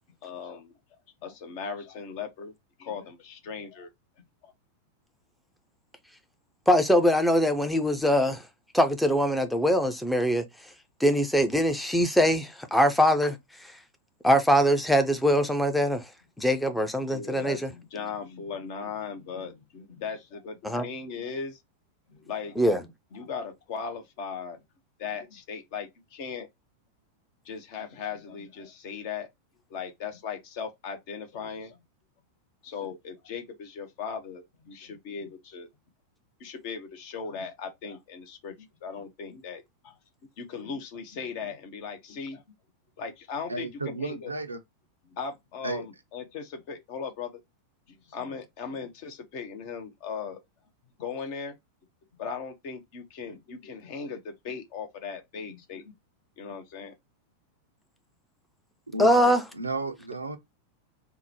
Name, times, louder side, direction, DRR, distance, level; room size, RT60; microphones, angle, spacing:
voice 1, 0.2-0.7 1.2-2.5 2.8-3.9 4.4-4.5 17.1-21.6 22.1-22.6 23.1-24.6 25.0-26.5 27.4-29.3 29.7-31.8 32.6-35.7 36.4-40.0 40.4-42.4 43.0-44.3 45.1-47.3 47.9-50.4 51.0-51.5 52.2-55.9 56.4-56.9, left 6 dB, 45° left, 0.8 m, -38 dB
voice 2, 6.7-8.4 8.7-10.4 11.0-13.4 13.6-13.7 14.2-16.1 16.4-17.7 20.6-20.8 22.6-22.8 59.0-59.4, equal, 5° left, 0.6 m, -22 dB
voice 3, 43.5-44.6 45.6-45.8 58.9-60.4, right 2 dB, 80° right, 0.6 m, -33 dB
3.7 x 2.1 x 2.9 m
figure-of-eight pair, 90°, 0 cm